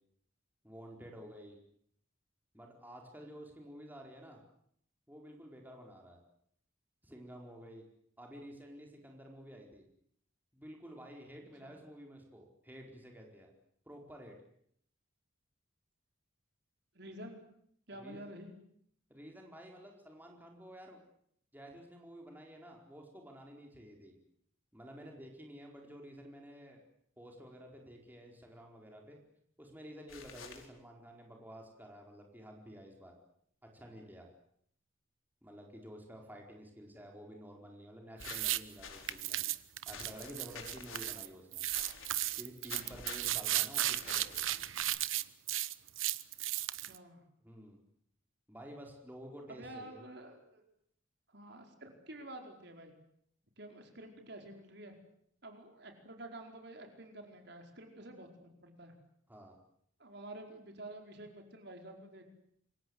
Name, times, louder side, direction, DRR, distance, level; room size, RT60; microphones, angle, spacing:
voice 1, 0.6-1.6 2.5-4.4 5.1-6.2 7.0-7.8 8.2-9.8 10.5-13.5 13.9-14.4 17.9-18.3 19.1-21.0 21.5-24.1 24.7-26.8 27.2-29.2 29.6-33.1 33.7-34.3 35.4-39.4 39.8-41.6 42.4-44.4 47.4-47.8 48.5-50.0 59.3-59.5, equal, 10° right, 1 dB, 4.6 m, -51 dB
voice 2, 16.9-17.4 17.9-18.5 46.7-47.2 49.5-50.6 51.3-52.9 53.6-55.0 55.4-58.9 60.0-62.2, right 1 dB, 55° right, 4 dB, 4.9 m, -49 dB
sound 1, 30.1-30.7 38.2-39.2 39.9-41.2 41.7-42.4 42.7-43.4 43.9-44.8, left 5 dB, 85° left, 4.4 m, -49 dB
sound 2, 38.2-38.6 39.1-41.3 41.5-46.9, right 14 dB, 80° right, 1.0 m, -35 dB
27.5 x 24.0 x 8.1 m, 0.69 s
head